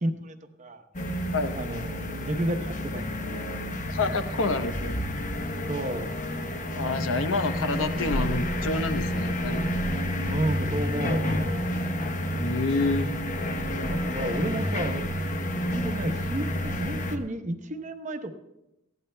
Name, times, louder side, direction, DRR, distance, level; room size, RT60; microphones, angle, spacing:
voice 1, 0.0-0.8 1.6-3.7 5.7-6.1 10.2-11.9 13.9-15.1 15.6-18.3, right 1 dB, 35° right, 6 dB, 0.9 m, -32 dB
sound 1, 0.9-17.2, equal, 40° left, 0.9 m, -29 dB
voice 2, 3.9-5.0 6.7-9.7 12.4-13.1, left 3 dB, 75° left, 8 dB, 0.8 m, -28 dB
20.0 x 15.5 x 2.2 m, 0.92 s
head